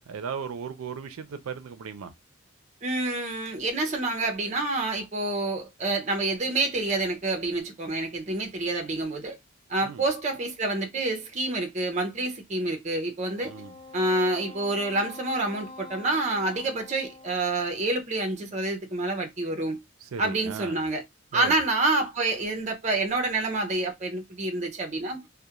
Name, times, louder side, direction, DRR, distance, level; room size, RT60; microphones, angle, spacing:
voice 1, 0.0-2.1 9.8-10.0 13.4-13.7 20.1-20.8 21.3-21.6, right 6 dB, 90° right, 0.4 m, -36 dB
voice 2, 2.8-9.4 9.7-13.5 13.9-19.8 20.2-21.0 21.3-25.2, right 2 dB, 35° right, 0.5 m, -28 dB
Wind instrument woodwind instrument, 13.3-17.9, left 2 dB, 25° left, 0.9 m, -46 dB
2.3 x 2.1 x 2.8 m
head